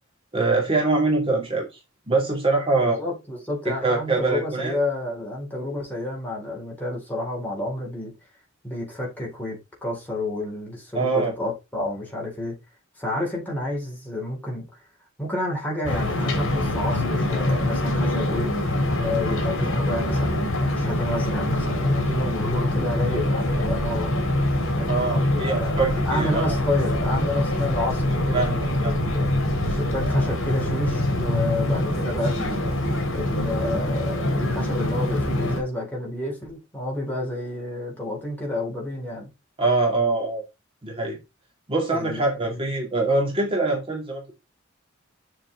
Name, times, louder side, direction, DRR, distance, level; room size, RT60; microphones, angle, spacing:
voice 1, 0.3-1.8 2.1-3.0 3.6-4.7 10.9-11.3 24.9-26.5 28.3-28.9 39.6-40.4 40.8-41.2 41.7-44.3, right 3 dB, 25° right, 2.5 m, -24 dB
voice 2, 2.8-8.1 8.6-12.6 13.0-14.7 15.2-18.5 19.0-24.1 24.8-25.7 26.0-29.3 29.7-32.7 33.1-39.3 41.9-42.6, left 1 dB, 10° left, 4.0 m, -30 dB
sound 1, 15.8-35.6, left 1 dB, 65° left, 3.7 m, -24 dB
7.6 x 6.1 x 3.9 m
head